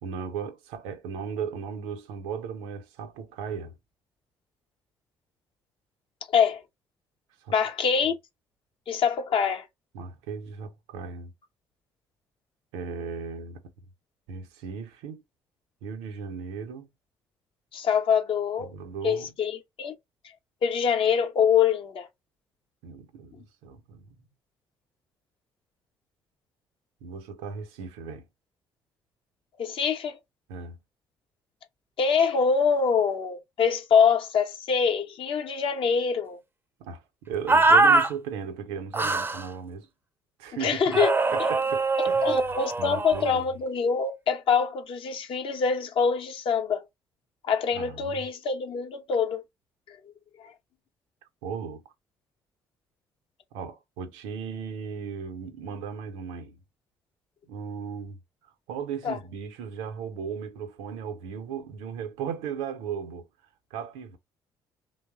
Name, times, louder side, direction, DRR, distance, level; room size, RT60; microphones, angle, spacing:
voice 1, 0.0-3.7 7.4-7.5 9.9-11.3 12.7-13.6 14.3-15.2 15.8-16.9 18.6-19.3 22.8-24.2 27.0-28.2 30.5-30.8 36.8-39.9 40.4-41.0 41.3-42.4 42.8-43.5 47.7-48.3 51.4-51.8 53.5-56.6 57.5-63.3 63.7-64.2, right 6 dB, 75° right, 0.5 m, -36 dB
voice 2, 7.5-8.1 8.9-9.6 17.7-18.7 19.0-19.9 20.6-22.1 29.6-30.2 32.0-36.4 40.6-41.1 41.4-41.5 42.0-46.8 47.4-49.4 59.0-59.2, left 6 dB, 55° left, 0.7 m, -24 dB
sound 1, 37.5-38.1 38.9-39.4 40.9-43.3, right 3 dB, 20° right, 0.5 m, -22 dB
2.9 x 2.0 x 2.3 m
hypercardioid pair, 50°, 11 cm